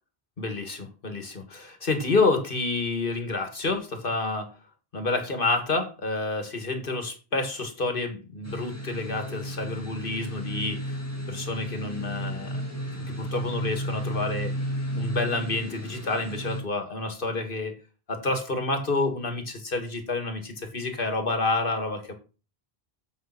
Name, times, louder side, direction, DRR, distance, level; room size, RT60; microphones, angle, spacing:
voice 1, 0.4-4.5 4.9-11.0 11.3-12.6 13.1-14.5 14.9-17.7 18.1-22.1, left 3 dB, 60° left, 6 dB, 2.0 m, -29 dB
sound 1, 8.4-16.6, equal, 15° left, 2.1 m, -33 dB
7.2 x 6.7 x 5.9 m, 0.34 s
omnidirectional pair, 1.0 m